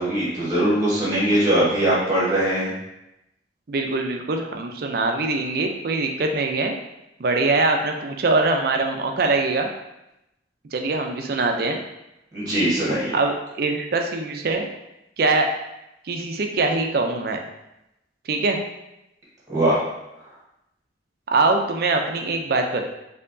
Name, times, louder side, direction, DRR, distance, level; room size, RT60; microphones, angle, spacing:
voice 1, 0.0-2.7 12.3-13.1 19.5-19.8, right 1 dB, 20° right, -8 dB, 1.2 m, -21 dB
voice 2, 3.7-6.8 7.2-9.7 10.7-11.8 13.1-14.7 15.2-15.5 16.0-17.4 18.3-18.6 21.3-22.8, right 3 dB, 55° right, 3 dB, 0.4 m, -23 dB
4.4 x 2.8 x 2.6 m, 0.89 s
head